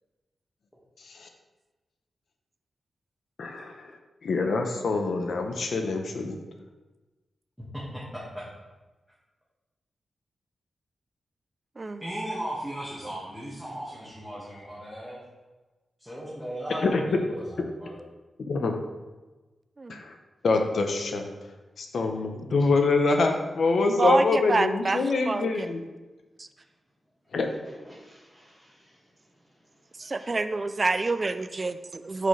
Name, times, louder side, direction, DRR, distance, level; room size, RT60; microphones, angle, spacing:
voice 1, 3.4-3.9 4.2-6.4 16.8-17.0 18.5-18.8 19.9-20.1 20.4-21.3 21.8-25.8 27.3-27.5, left 3 dB, 75° left, 4 dB, 0.7 m, -25 dB
voice 2, 12.0-15.2 16.0-18.0 27.7-29.0 30.0-30.1, right 1 dB, ahead, -8 dB, 1.7 m, -37 dB
voice 3, 24.0-25.7 26.4-26.5 30.0-32.3, right 3 dB, 35° right, 11 dB, 0.4 m, -27 dB
6.6 x 5.0 x 3.2 m, 1.2 s
cardioid pair, 80°, 0 cm